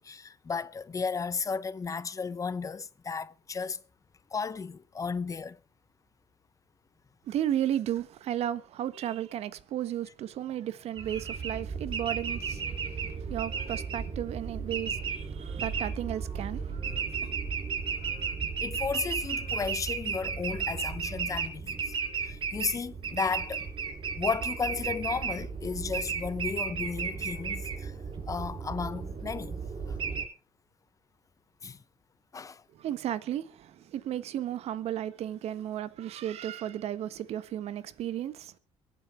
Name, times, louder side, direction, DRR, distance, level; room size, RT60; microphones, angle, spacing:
voice 1, 0.0-3.8 4.3-5.6 18.6-21.9 22.2-23.7 24.2-27.9 28.3-30.0 31.6-31.8 32.3-32.6, left 5 dB, 30° left, 0.9 m, -34 dB
voice 2, 7.2-17.4 32.7-38.5, right 11 dB, 65° right, 1.4 m, -34 dB
sound 1, 11.0-30.2, right 6 dB, 45° right, 6.2 m, -34 dB
23.0 x 9.1 x 4.5 m
cardioid pair, 95°, 12 cm